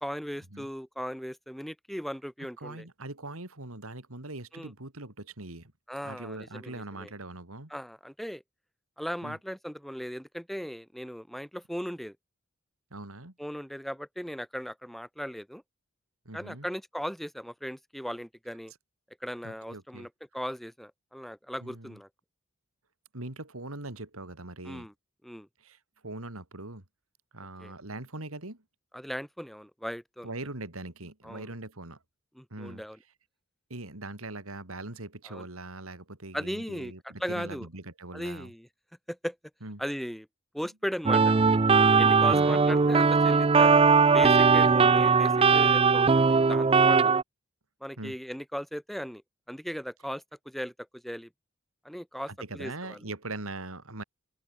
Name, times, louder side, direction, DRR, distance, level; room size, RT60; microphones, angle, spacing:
voice 1, 0.0-2.8 4.5-4.7 5.9-7.1 7.7-8.4 9.0-12.1 13.4-15.6 16.3-18.7 19.2-22.1 24.6-24.9 25.2-25.5 27.6-27.7 28.9-30.3 31.2-31.5 32.4-33.0 35.3-35.4 36.3-36.9 37.2-37.7 38.1-38.7 39.1-39.3 39.8-40.3 40.5-41.3 42.0-43.8 44.1-47.1 47.8-49.2 49.5-50.7 51.0-51.3 51.8-53.0, equal, ahead, 1.5 m, -37 dB
voice 2, 2.6-5.7 6.0-7.7 9.2-9.4 12.9-13.3 16.3-16.7 19.4-20.1 21.6-22.0 23.1-24.9 25.6-25.8 26.0-26.8 27.3-28.6 30.2-32.0 32.5-32.8 33.7-38.5 39.6-39.8 42.2-42.7 44.8-45.1 48.0-48.2 52.3-54.0, right 2 dB, 85° right, 3.4 m, -41 dB
sound 1, 41.1-47.2, right 5 dB, 25° right, 0.5 m, -20 dB
head